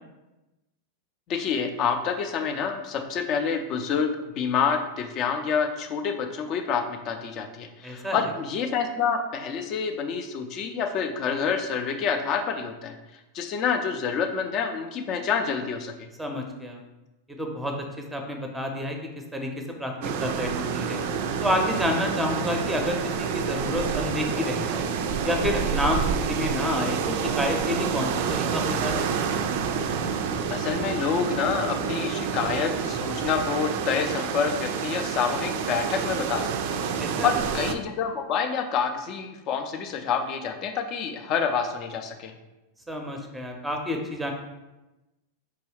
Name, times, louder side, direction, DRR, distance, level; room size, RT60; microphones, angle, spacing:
voice 1, 1.3-12.9 13.3-16.1 30.5-42.3, left 6 dB, 35° left, 5 dB, 0.5 m, -28 dB
voice 2, 7.8-8.2 16.2-16.8 17.4-17.7 18.1-19.0 19.3-21.0 21.4-24.9 25.2-29.1 37.0-37.3 42.9-44.3, left 1 dB, 5° right, 3 dB, 0.6 m, -29 dB
sound 1, 20.0-37.7, right 6 dB, 50° right, 0.3 m, -28 dB
4.8 x 3.0 x 3.1 m, 1.0 s
figure-of-eight pair, 90°, 0 cm